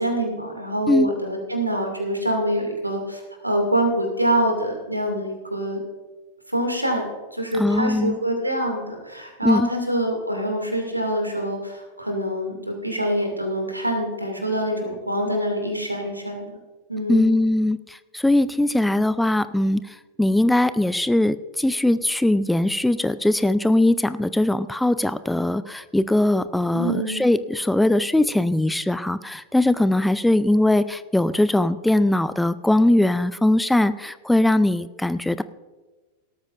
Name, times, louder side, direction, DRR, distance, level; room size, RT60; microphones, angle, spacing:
voice 1, 0.0-5.8 6.5-16.5 16.9-17.3 26.7-27.3, right 1 dB, 85° right, 3 dB, 2.5 m, -25 dB
voice 2, 7.6-8.2 9.4-9.7 17.1-35.4, left 1 dB, 5° left, 14 dB, 0.4 m, -20 dB
18.5 x 13.0 x 2.6 m, 1.3 s
figure-of-eight pair, 90°, 0 cm